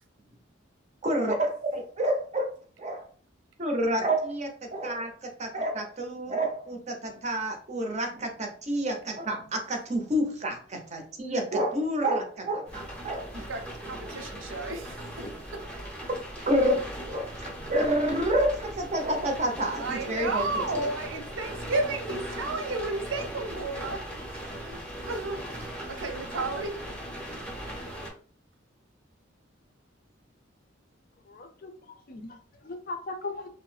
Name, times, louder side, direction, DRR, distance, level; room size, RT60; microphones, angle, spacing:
voice 1, 1.0-2.5 2.8-3.1 3.6-13.3 16.5-20.6, right 1 dB, 35° right, 3 dB, 0.6 m, -29 dB
sound 1, 12.7-28.1, right 1 dB, 5° left, 0.7 m, -39 dB
voice 2, 13.3-15.1 19.8-24.8 25.1-26.7, right 2 dB, 85° right, 4 dB, 0.6 m, -33 dB
voice 3, 31.2-33.5, left 3 dB, 45° left, 6 dB, 0.5 m, -39 dB
2.6 x 2.0 x 3.2 m, 0.43 s
head